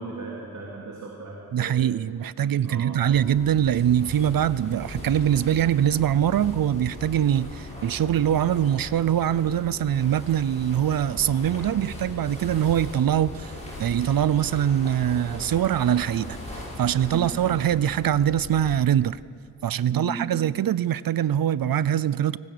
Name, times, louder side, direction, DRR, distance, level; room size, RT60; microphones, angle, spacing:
voice 1, 0.0-1.9 2.6-3.1 17.1-17.4 19.9-20.4, right 3 dB, 50° right, -3 dB, 3.4 m, -36 dB
voice 2, 1.5-13.5 13.8-16.4 16.8-19.2 19.6-22.4, right 10 dB, 70° right, 18 dB, 0.6 m, -23 dB
sound 1, 3.1-18.8, left 2 dB, 20° left, 7.5 m, -39 dB
23.5 x 19.0 x 6.8 m, 2.2 s
wide cardioid pair, 125°, 36 cm